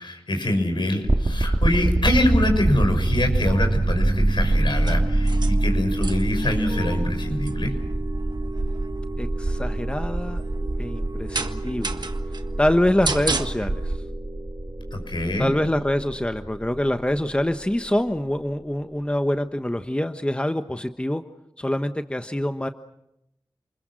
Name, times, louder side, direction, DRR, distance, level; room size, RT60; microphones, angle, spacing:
voice 1, 0.0-7.8 14.9-15.5, left 1 dB, 75° left, 5 dB, 6.1 m, -25 dB
sound 1, 1.1-18.0, right 1 dB, 40° right, 2.4 m, -25 dB
sound 2, 3.5-14.0, right 2 dB, 60° right, 1.6 m, -32 dB
voice 2, 9.2-10.4 10.8-12.1 12.6-14.0 15.4-21.2 21.6-22.7, left 1 dB, 15° left, 8 dB, 1.2 m, -25 dB
29.0 x 21.5 x 6.3 m, 0.83 s
cardioid pair, 45°, 8 cm